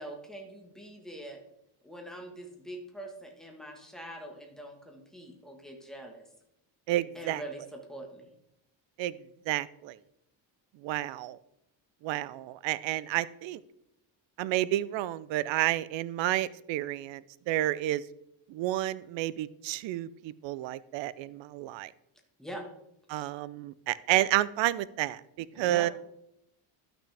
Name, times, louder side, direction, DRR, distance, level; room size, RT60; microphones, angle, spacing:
voice 1, 0.0-1.4 1.8-6.2 7.1-8.3 22.4-22.7 23.2-23.3 25.5-25.9, right 1 dB, ahead, 1 dB, 1.3 m, -44 dB
voice 2, 6.9-7.4 9.0-9.1 9.5-10.0 10.8-11.4 12.0-13.6 14.4-17.2 17.5-18.0 18.5-21.9 23.1-25.9, right 15 dB, 75° right, 18 dB, 0.5 m, -30 dB
12.5 x 6.0 x 3.4 m, 0.80 s
cardioid pair, 135°, 46 cm